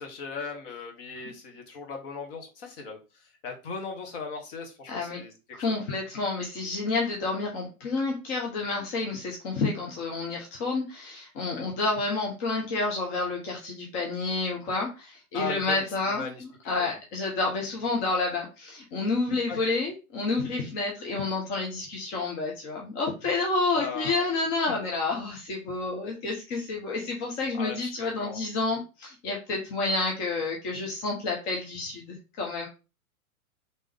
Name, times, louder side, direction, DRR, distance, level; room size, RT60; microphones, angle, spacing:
voice 1, 0.0-5.3 5.6-5.8 11.6-11.7 15.3-16.4 16.8-17.0 19.5-19.7 23.7-24.3 27.5-28.4, left 4 dB, 40° left, 3 dB, 1.1 m, -38 dB
voice 2, 4.9-5.2 5.5-32.7, left 3 dB, 20° left, -1 dB, 0.5 m, -29 dB
3.3 x 2.7 x 3.2 m, 0.30 s
figure-of-eight pair, 110°, 44 cm